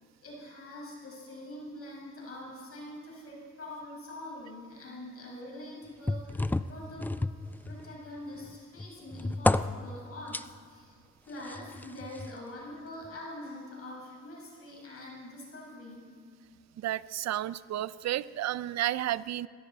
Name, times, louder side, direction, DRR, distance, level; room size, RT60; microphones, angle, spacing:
voice 1, 0.2-7.2 7.7-10.9 11.3-16.1, left 1 dB, 50° left, -3 dB, 5.4 m, -44 dB
sound 1, 6.1-8.1 8.5-10.4 11.5-12.3 13.0-13.1, left 2 dB, 5° left, 0.3 m, -31 dB
voice 2, 16.8-19.5, right 13 dB, 60° right, 18 dB, 0.6 m, -32 dB
21.0 x 16.5 x 4.1 m, 2.2 s
cardioid pair, 90°, 30 cm